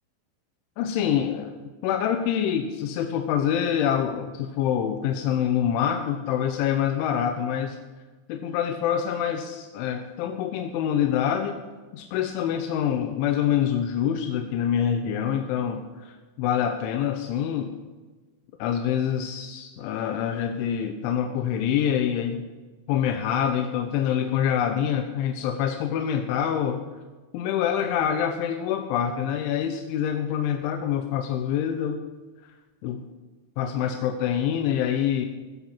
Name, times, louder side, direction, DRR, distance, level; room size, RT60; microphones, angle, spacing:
voice 1, 0.8-7.8 8.3-11.6 11.9-17.7 18.6-22.4 22.9-26.8 27.3-32.0 32.8-33.0 33.6-35.3, left 9 dB, 85° left, 6 dB, 3.4 m, -26 dB
15.5 x 15.5 x 5.7 m, 1.3 s
omnidirectional pair, 5.3 m